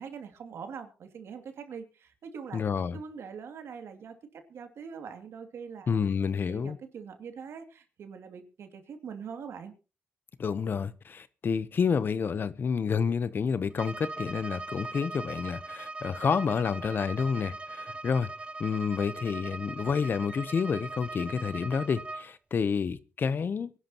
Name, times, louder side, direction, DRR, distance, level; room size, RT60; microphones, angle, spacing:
voice 1, 0.0-2.6 2.9-9.7, right 6 dB, 70° right, 2.5 m, -43 dB
voice 2, 2.5-3.0 5.9-6.8 10.4-18.3 18.6-23.7, left 6 dB, 50° left, 0.8 m, -29 dB
Bowed string instrument, 13.7-22.3, right 2 dB, 25° right, 0.7 m, -40 dB
24.0 x 11.5 x 3.0 m
cardioid pair, 95°, 5 cm